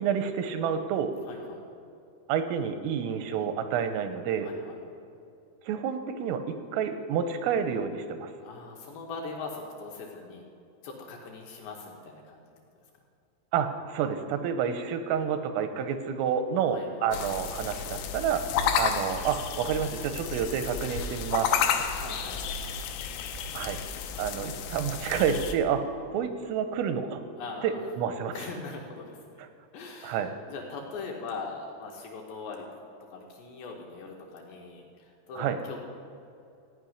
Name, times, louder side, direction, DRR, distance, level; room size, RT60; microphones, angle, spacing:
voice 1, 0.0-1.1 2.3-4.5 5.6-6.4 6.7-8.3 13.5-18.4 18.7-21.9 23.5-23.8 24.2-27.2 27.6-28.4 29.4-29.5 30.0-30.3 35.4-35.6, right 7 dB, 85° right, 9 dB, 3.2 m, -29 dB
voice 2, 1.2-1.7 4.4-4.8 8.4-10.4 10.8-12.4 16.7-17.1 18.5-18.7 21.9-22.7 27.4-27.9 28.3-29.5 29.7-32.7 33.1-35.8, left 4 dB, 75° left, 0 dB, 2.8 m, -41 dB
sound 1, 17.1-25.6, left 7 dB, 90° left, 3.4 m, -31 dB
15.0 x 5.5 x 9.6 m, 2.6 s
omnidirectional pair, 5.9 m